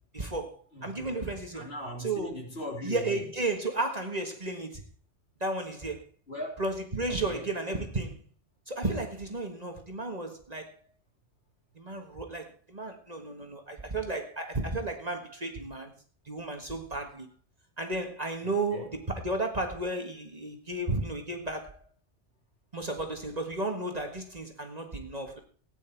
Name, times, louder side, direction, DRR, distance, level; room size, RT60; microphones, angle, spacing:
voice 1, 0.1-1.6 2.0-2.3 2.8-4.8 5.4-6.0 6.6-8.2 8.7-10.7 11.8-15.9 16.3-17.3 17.8-21.8 22.7-25.4, right 2 dB, 35° right, 1.7 m, -33 dB
voice 2, 0.7-1.3 1.5-3.3 6.3-6.6 7.1-7.5 18.7-18.9, equal, 55° left, 3.7 m, -39 dB
16.5 x 9.6 x 4.6 m
omnidirectional pair, 1.2 m